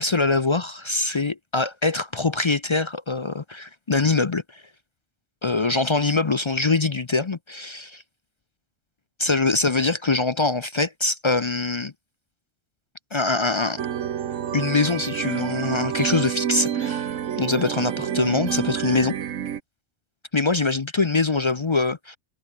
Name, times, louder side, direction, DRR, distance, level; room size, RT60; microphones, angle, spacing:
voice 1, 0.0-4.6 5.4-8.0 9.2-11.9 13.1-13.8 14.5-19.1 20.3-22.2, left 3 dB, 35° left, 0.4 m, -23 dB
sound 1, 13.8-19.6, right 9 dB, 75° right, 1.3 m, -28 dB
omnidirectional pair, 1.4 m